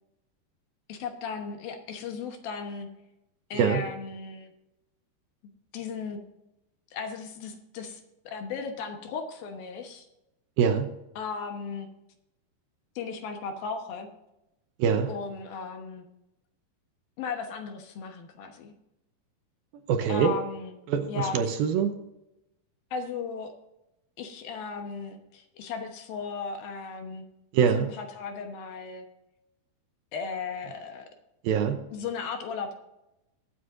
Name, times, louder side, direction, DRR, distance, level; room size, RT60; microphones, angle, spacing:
voice 1, 0.9-2.9 3.5-4.5 5.7-6.2 6.9-10.1 11.2-11.9 13.0-14.1 15.1-16.1 17.2-18.7 20.1-20.7 21.1-21.4 22.9-23.5 24.2-27.3 27.7-29.1 30.1-31.1 31.9-32.7, left 5 dB, 70° left, 5 dB, 2.8 m, -36 dB
voice 2, 3.5-3.9 10.6-11.0 14.8-15.1 19.9-20.4 20.9-22.0 27.5-27.9 31.4-31.9, right 7 dB, 75° right, 6 dB, 2.4 m, -24 dB
22.5 x 7.9 x 2.6 m, 0.91 s
omnidirectional pair, 4.7 m